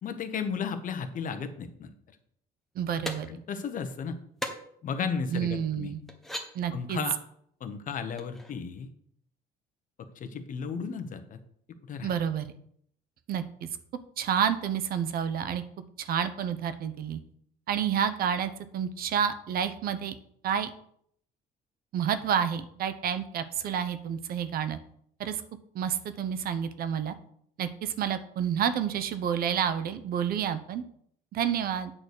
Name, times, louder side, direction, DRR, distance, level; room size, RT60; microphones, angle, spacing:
voice 1, 0.0-1.9 3.3-4.2 4.8-5.9 6.7-7.1 7.6-8.9 10.2-11.4 11.9-12.1, left 6 dB, 50° left, 8 dB, 1.1 m, -34 dB
voice 2, 2.8-3.3 5.3-6.0 6.5-7.0 12.0-12.5 13.3-13.7 14.2-15.6 16.0-17.2 17.7-20.1 20.4-20.7 21.9-24.8 25.2-25.4 25.7-27.1 27.6-30.8 31.3-31.9, right 8 dB, 60° right, 12 dB, 0.9 m, -29 dB
sound 1, 3.0-3.2 4.4-4.5 5.3-5.4 6.1-6.5 8.2-8.5, equal, ahead, 1.3 m, -35 dB
8.9 x 4.1 x 6.6 m, 0.66 s
cardioid pair, 110°, 17 cm